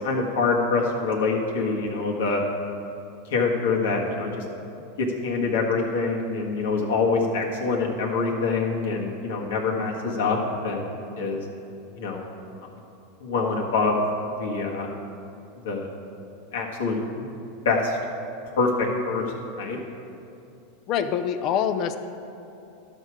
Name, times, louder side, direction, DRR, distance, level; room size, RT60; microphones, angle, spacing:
voice 1, 0.0-2.4 3.3-4.4 5.0-10.4 10.6-11.4 12.0-12.3 13.2-14.0 14.4-14.9 15.6-15.9 16.5-17.0 17.6-18.0 18.6-19.2 19.6-19.8, left 4 dB, 80° left, 0 dB, 1.6 m, -25 dB
voice 2, 20.9-22.0, left 8 dB, 50° left, 9 dB, 0.5 m, -25 dB
12.5 x 6.6 x 4.8 m, 2.7 s
hypercardioid pair, 110°, 0 cm